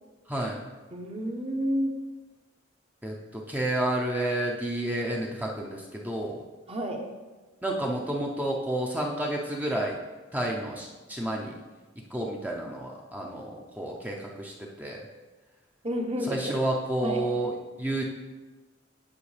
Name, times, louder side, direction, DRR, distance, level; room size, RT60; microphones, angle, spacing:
voice 1, 0.3-0.7 3.0-6.4 7.6-10.0 10.3-11.5 12.1-15.0 16.2-18.0, right 1 dB, 10° right, -2 dB, 0.6 m, -30 dB
voice 2, 0.9-1.9 6.7-7.0 15.8-16.5 17.0-17.3, equal, 30° right, 2 dB, 0.9 m, -30 dB
9.6 x 5.4 x 3.3 m, 1.2 s
head